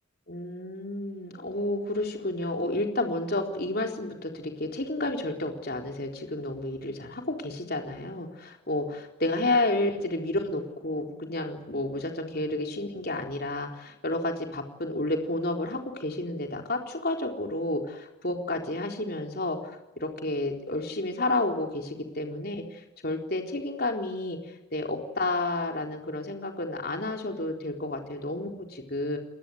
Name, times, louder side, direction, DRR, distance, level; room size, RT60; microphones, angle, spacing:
voice 1, 0.3-24.4 24.7-29.2, left 2 dB, 50° left, 2 dB, 4.0 m, -31 dB
29.5 x 20.5 x 8.0 m, 1.0 s
head